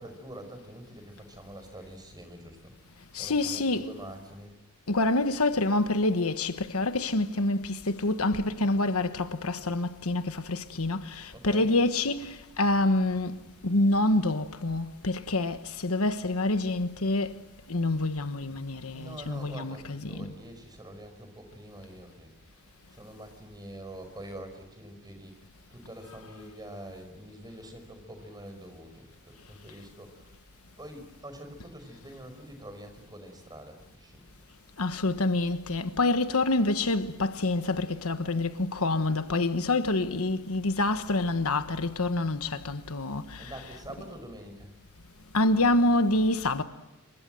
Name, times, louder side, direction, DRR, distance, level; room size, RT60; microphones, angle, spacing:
voice 1, 0.0-2.7 3.1-4.5 11.3-11.7 18.9-22.3 22.9-25.3 25.7-30.4 30.8-34.2 43.3-44.7, right 1 dB, 20° right, 5.1 m, -45 dB
voice 2, 3.1-3.9 4.9-13.4 13.6-17.3 17.7-20.3 34.8-43.5 45.3-46.6, left 2 dB, 75° left, 1.3 m, -27 dB
27.5 x 24.0 x 7.7 m
head